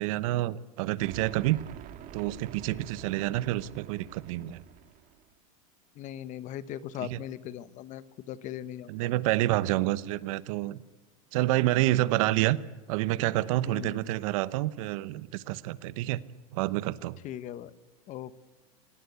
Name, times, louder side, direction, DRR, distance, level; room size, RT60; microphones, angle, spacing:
voice 1, 0.0-1.6 2.1-4.6 7.0-7.2 8.9-10.8 11.3-12.6 12.9-16.2 16.5-17.2, right 16 dB, 65° right, 17 dB, 1.0 m, -28 dB
sound 1, 1.0-5.3, right 11 dB, 45° right, 1.8 m, -47 dB
voice 2, 6.0-9.1 13.6-14.0 17.2-17.7 18.1-18.3, left 11 dB, 40° left, 15 dB, 1.2 m, -39 dB
25.5 x 17.5 x 8.3 m, 1.2 s
supercardioid pair, 115°, 18 cm